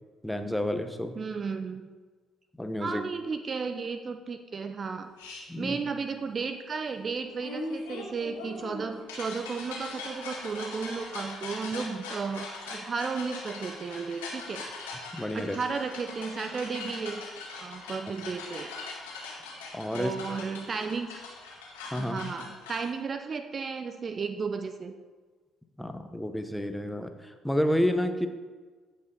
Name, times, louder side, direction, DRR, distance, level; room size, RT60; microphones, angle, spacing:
voice 1, 0.2-1.1 2.6-3.0 5.5-5.8 15.1-15.6 19.7-20.1 21.9-22.2 25.8-28.3, left 1 dB, 5° left, 7 dB, 1.0 m, -30 dB
voice 2, 1.2-1.8 2.8-5.1 5.6-14.7 15.3-17.2 17.5-18.7 19.9-21.1 22.0-24.9, right 5 dB, 40° right, 8 dB, 0.6 m, -34 dB
sound 1, 5.2-5.4 7.4-22.8, left 3 dB, 75° left, 2.0 m, -41 dB
14.5 x 5.4 x 3.9 m, 1.4 s
figure-of-eight pair, 45°, 0 cm